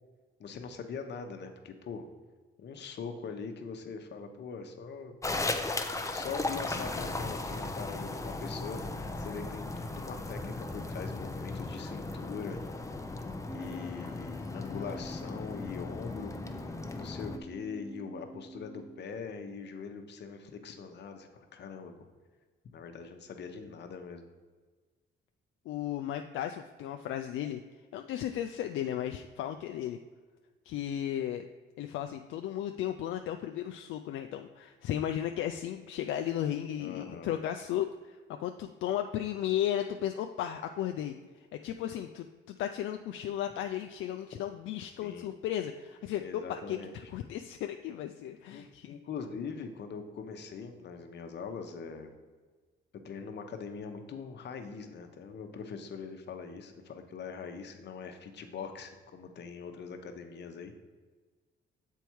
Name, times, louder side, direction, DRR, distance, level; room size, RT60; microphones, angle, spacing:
voice 1, 0.4-2.1 2.6-5.1 6.1-9.6 10.0-12.6 13.5-16.3 16.8-21.9 22.7-24.3 36.8-37.3 45.0-45.3 46.2-47.1 48.5-52.1 53.0-60.7, left 5 dB, 60° left, 6 dB, 0.9 m, -42 dB
sound 1, 5.2-17.4, left 2 dB, 15° left, 0.6 m, -37 dB
Wind instrument woodwind instrument, 13.4-19.1, left 2 dB, 90° right, 2.2 m, -47 dB
voice 2, 25.7-27.6 27.9-30.0 30.7-31.5 31.8-41.2 41.6-46.2 46.5-46.8 47.1-48.9, left 11 dB, 80° left, 5 dB, 0.4 m, -35 dB
7.0 x 4.6 x 4.6 m, 1.4 s
cardioid pair, 90°, 20 cm